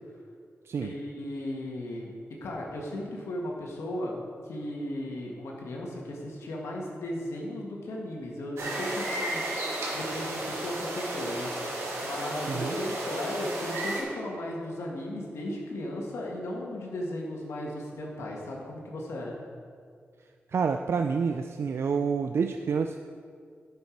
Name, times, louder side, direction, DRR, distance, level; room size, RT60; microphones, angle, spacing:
voice 1, 0.8-19.4, left 1 dB, 90° left, -2 dB, 1.7 m, -36 dB
sound 1, 8.6-14.0, right 1 dB, 85° right, 2.3 m, -33 dB
voice 2, 20.5-23.0, right 5 dB, 65° right, 6 dB, 0.4 m, -28 dB
11.0 x 6.8 x 4.6 m, 2.2 s
cardioid pair, 70°, 5 cm